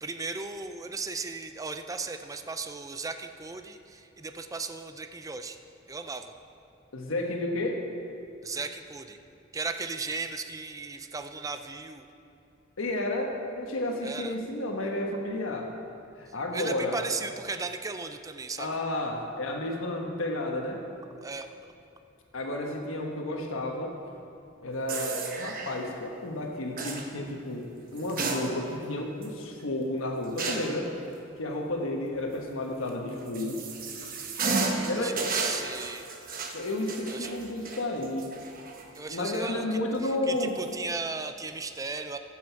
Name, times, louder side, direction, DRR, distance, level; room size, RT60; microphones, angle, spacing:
voice 1, 0.0-5.6 5.9-6.3 8.4-9.2 9.5-12.1 14.0-14.3 16.3-18.8 21.2-21.7 34.7-36.0 37.1-37.3 39.0-42.2, right 4 dB, 15° right, 8 dB, 0.4 m, -36 dB
voice 2, 6.9-7.8 12.8-15.7 16.2-17.0 18.6-20.8 22.3-23.9 24.6-30.9 31.4-33.6 34.9-35.3 36.5-38.3 39.1-40.6, left 1 dB, 85° left, 1 dB, 1.2 m, -32 dB
sound 1, 24.9-25.8 26.8-27.1 28.0-28.9 29.2-29.3 30.4-30.8 32.9-39.0 39.3-39.4 40.4-40.7, right 4 dB, 45° right, 1.1 m, -33 dB
15.0 x 7.7 x 4.6 m, 2.7 s
head